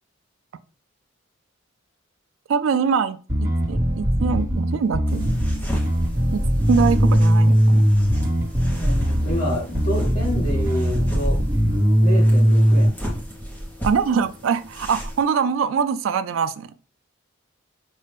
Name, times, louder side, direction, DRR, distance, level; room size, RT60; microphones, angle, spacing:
voice 1, 2.5-5.2 6.3-6.4 6.7-7.9 13.8-16.7, right 6 dB, 75° right, 0.3 m, -23 dB
Bass guitar, 3.3-12.9, equal, 45° right, 1.4 m, -19 dB
sound 1, 5.1-15.2, equal, 10° left, 0.9 m, -34 dB
voice 2, 8.8-11.4 12.0-13.0, left 1 dB, 45° left, 1.8 m, -28 dB
5.4 x 2.4 x 3.3 m
head